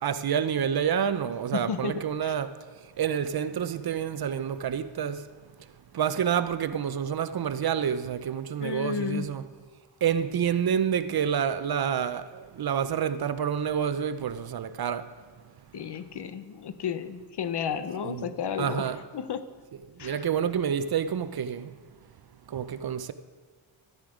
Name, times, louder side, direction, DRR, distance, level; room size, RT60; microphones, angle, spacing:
voice 1, 0.0-2.5 3.0-5.2 5.9-9.4 10.0-15.1 18.0-18.3 18.6-19.0 20.0-21.7 22.5-23.1, right 8 dB, 50° right, 0.6 m, -28 dB
voice 2, 1.5-2.3 8.6-9.3 15.7-19.5 20.0-20.3, left 7 dB, 55° left, 0.8 m, -33 dB
13.0 x 9.6 x 5.0 m
wide cardioid pair, 115°, 48 cm